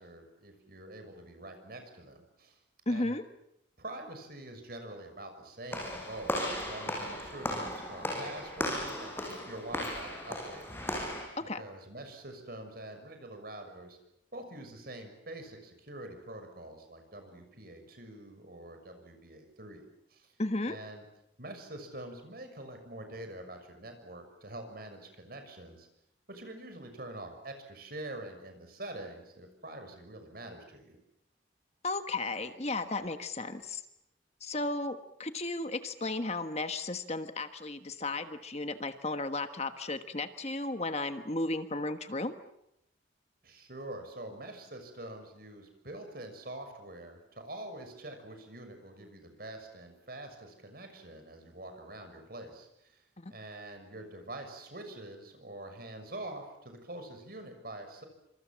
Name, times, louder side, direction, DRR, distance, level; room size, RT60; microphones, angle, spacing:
voice 1, 0.0-2.6 2.9-3.2 3.8-10.8 11.4-14.0 14.3-19.8 20.1-20.3 20.7-21.0 21.4-25.9 26.3-31.0 43.4-53.0 53.3-58.0, right 1 dB, 50° right, 6 dB, 6.3 m, -45 dB
voice 2, 2.9-3.2 11.4-11.6 20.4-20.8 31.8-33.8 34.4-42.3 53.2-53.3, left 2 dB, 35° left, 9 dB, 1.4 m, -34 dB
Walk footsteps / Slam, 5.7-11.3, left 1 dB, 10° left, 6.7 m, -36 dB
27.5 x 26.5 x 7.6 m, 0.80 s
head